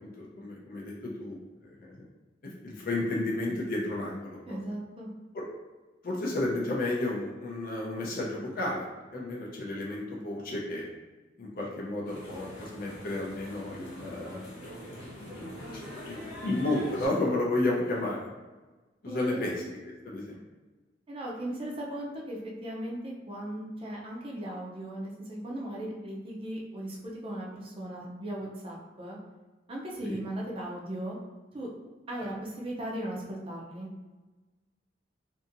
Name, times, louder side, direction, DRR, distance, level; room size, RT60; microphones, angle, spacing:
voice 1, 0.0-1.9 2.6-4.6 6.0-10.9 11.4-14.5 15.8-18.3 19.0-19.5 20.0-20.4 30.0-30.2, left 2 dB, 50° left, -3 dB, 0.5 m, -32 dB
voice 2, 4.5-5.1 19.1-19.6 21.1-29.2 29.7-31.2 31.5-31.7 32.1-34.0, right 1 dB, 30° right, -3 dB, 0.5 m, -37 dB
sound 1, 12.0-17.1, equal, 80° left, 0.9 m, -43 dB
2.7 x 2.6 x 2.5 m, 1.2 s
head